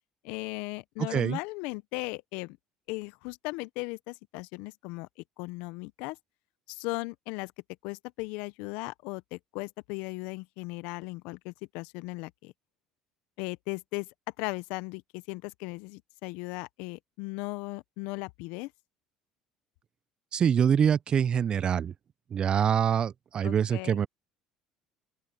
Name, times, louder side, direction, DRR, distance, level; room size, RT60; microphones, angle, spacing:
voice 1, 0.2-2.6 2.9-5.1 5.4-6.2 6.7-7.5 7.8-12.5 13.4-18.7 23.4-24.0, left 24 dB, 70° left, 0.9 m, -37 dB
voice 2, 20.3-21.9 22.3-24.1, right 8 dB, 45° right, 0.7 m, -25 dB
open air
hypercardioid pair, 65°, 2 cm